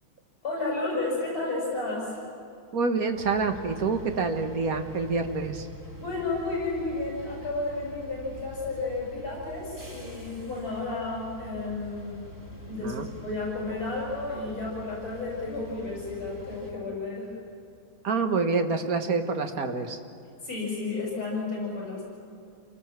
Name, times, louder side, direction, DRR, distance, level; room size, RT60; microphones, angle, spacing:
voice 1, 0.4-2.2 6.0-12.3 12.6-13.0 13.2-17.3 20.4-22.0, left 3 dB, 45° left, -4 dB, 7.7 m, -32 dB
voice 2, 2.7-5.7 12.8-13.1 18.0-20.0, right 4 dB, 45° right, 6 dB, 1.7 m, -27 dB
sound 1, 3.1-16.7, left 1 dB, 10° right, 2.6 m, -45 dB
28.0 x 19.0 x 7.5 m, 2.5 s
omnidirectional pair, 2.4 m